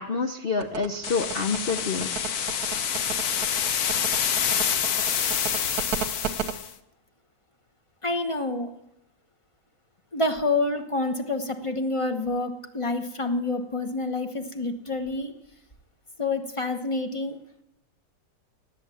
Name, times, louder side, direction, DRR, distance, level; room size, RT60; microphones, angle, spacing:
voice 1, 0.0-2.1, left 4 dB, 80° left, 6 dB, 0.5 m, -27 dB
sound 1, 0.6-6.5, right 8 dB, 60° right, 1.2 m, -32 dB
sound 2, 1.0-6.7, left 8 dB, 60° left, 1.2 m, -27 dB
voice 2, 8.0-8.7 10.1-15.3 16.2-17.4, left 2 dB, 25° left, 6 dB, 0.7 m, -28 dB
18.0 x 8.7 x 7.1 m, 0.83 s
omnidirectional pair, 2.1 m